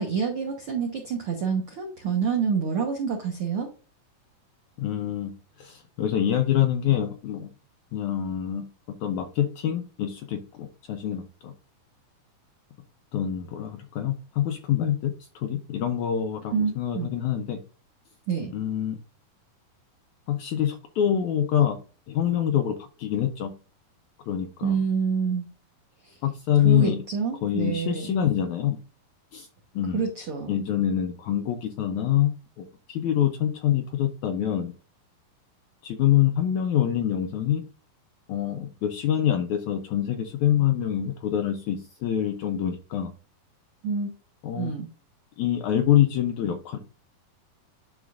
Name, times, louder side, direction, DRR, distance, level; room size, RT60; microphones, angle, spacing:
voice 1, 0.0-3.7 16.5-17.1 18.3-18.5 24.6-25.5 26.6-28.1 29.9-30.6 43.8-44.1 44.6-44.9, right 6 dB, 80° right, 2 dB, 1.2 m, -27 dB
voice 2, 4.8-5.3 5.6-7.5 7.9-8.6 9.0-11.5 13.1-17.6 18.5-19.0 20.3-21.8 22.1-23.5 24.3-24.8 26.2-27.0 27.4-28.8 29.3-29.5 29.7-30.0 30.5-34.7 35.8-37.6 38.3-43.1 44.4-44.7 45.4-46.8, left 10 dB, 80° left, 5 dB, 1.7 m, -25 dB
11.0 x 4.1 x 2.5 m, 0.36 s
omnidirectional pair, 4.2 m